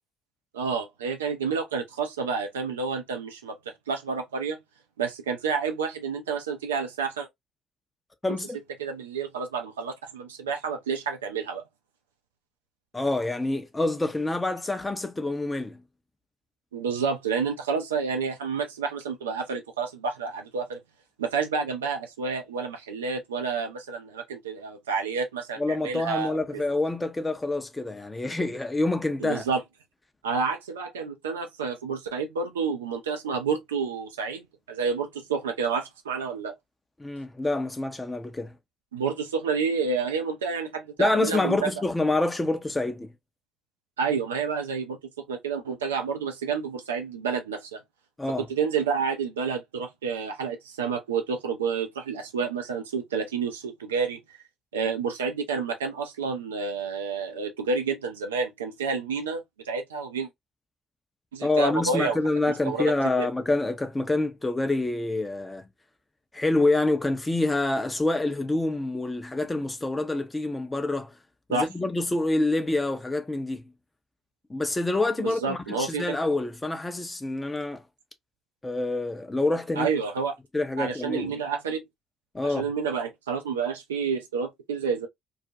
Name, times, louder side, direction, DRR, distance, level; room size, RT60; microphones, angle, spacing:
voice 1, 0.5-3.6 3.9-4.6 5.0-7.3 8.8-11.6 16.7-20.8 21.2-26.4 29.2-29.6 30.2-36.5 38.9-41.7 44.0-47.8 48.4-54.2 54.7-60.3 61.3-62.2 62.6-62.9 71.5-71.7 75.2-76.2 79.8-80.3 80.8-81.8 82.4-85.1, right 5 dB, 80° right, 0.4 m, -29 dB
voice 2, 8.2-8.6 12.9-15.8 25.6-29.4 37.0-38.6 41.0-43.1 48.2-48.5 61.4-65.7 66.3-71.1 71.5-73.7 74.5-77.8 78.6-79.9 80.5-81.3 82.3-82.7, left 2 dB, 15° left, 0.6 m, -27 dB
2.4 x 2.1 x 2.6 m
figure-of-eight pair, 45°, 0 cm